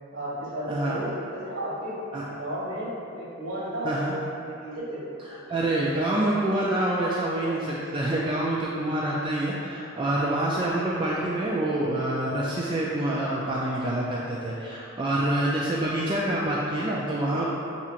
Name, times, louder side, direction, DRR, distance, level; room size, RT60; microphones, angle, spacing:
voice 1, 0.1-2.0 2.3-2.9 3.1-5.0, right 1 dB, 85° right, -8 dB, 1.5 m, -33 dB
voice 2, 0.7-1.0 2.1-2.2 3.8-4.1 5.5-17.5, right 1 dB, 25° right, -5 dB, 0.3 m, -26 dB
6.9 x 2.8 x 2.4 m, 2.8 s
head